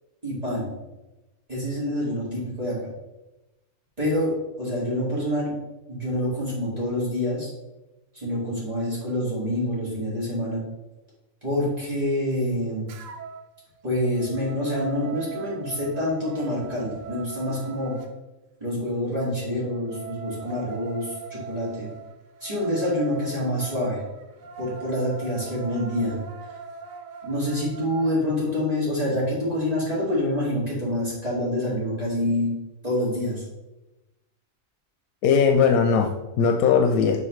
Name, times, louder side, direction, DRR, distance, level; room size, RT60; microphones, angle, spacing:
voice 1, 0.2-0.7 1.5-2.8 4.0-4.3 4.6-5.5 5.9-7.5 8.1-10.6 11.4-12.8 13.8-18.0 18.6-21.9 22.4-24.0 24.6-26.2 27.2-32.5 32.8-33.4, left 1 dB, 30° right, -7 dB, 2.1 m, -26 dB
sound 1, 12.9-13.5 13.9-18.1 19.6-28.2, right 6 dB, 75° right, 1.0 m, -40 dB
voice 2, 35.2-37.2, left 6 dB, 90° left, 4 dB, 1.0 m, -19 dB
5.8 x 5.7 x 3.1 m, 1.0 s
omnidirectional pair, 1.4 m